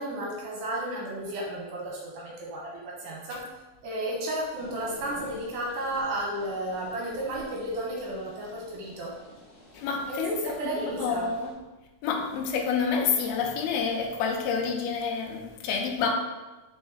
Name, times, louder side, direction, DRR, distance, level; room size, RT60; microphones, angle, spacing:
voice 1, 0.0-3.5 3.8-9.2 10.1-10.2 10.4-11.3, right 1 dB, 75° right, -3 dB, 2.0 m, -33 dB
sound 1, 4.5-11.5, left 1 dB, 45° left, 0.6 m, -50 dB
voice 2, 9.7-10.5 11.0-11.6 12.0-16.1, left 5 dB, 75° left, 1 dB, 2.5 m, -28 dB
6.1 x 3.9 x 4.0 m, 1.1 s
omnidirectional pair, 4.9 m